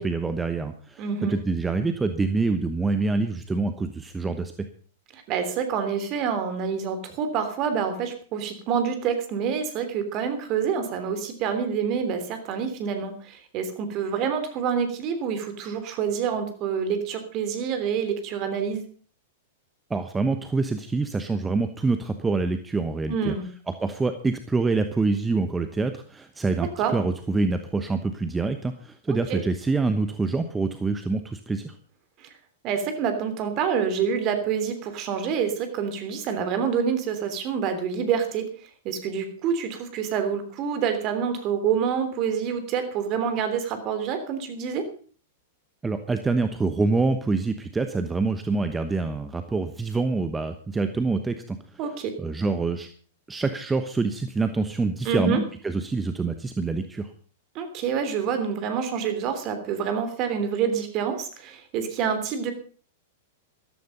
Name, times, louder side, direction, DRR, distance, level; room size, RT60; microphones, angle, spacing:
voice 1, 0.0-1.0 1.3-4.7 19.9-23.3 23.7-31.7 45.8-51.8 52.2-52.9 53.3-57.1, right 3 dB, 10° right, 8 dB, 1.1 m, -26 dB
voice 2, 1.0-1.3 5.1-18.8 23.1-23.5 26.6-26.9 29.1-29.4 32.2-32.3 32.6-38.5 38.8-44.8 51.8-52.1 55.0-55.4 57.5-62.5, right 7 dB, 40° right, 8 dB, 3.2 m, -27 dB
13.5 x 13.5 x 5.3 m, 0.43 s
figure-of-eight pair, 100°, 0 cm